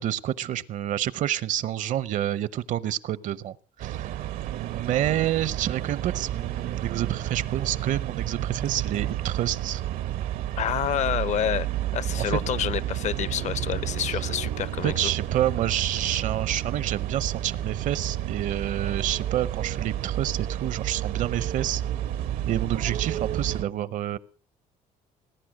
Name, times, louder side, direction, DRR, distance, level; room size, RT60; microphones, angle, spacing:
voice 1, 0.0-4.1 4.5-9.8 12.1-12.4 14.8-21.8 22.5-24.2, right 12 dB, 60° right, 19 dB, 0.8 m, -28 dB
sound 1, 3.8-23.6, right 12 dB, 80° right, 1.0 m, -31 dB
voice 2, 10.6-11.7 11.9-15.1, left 10 dB, 55° left, 20 dB, 0.7 m, -28 dB
19.5 x 10.0 x 6.3 m, 0.40 s
cardioid pair, 120°, 14 cm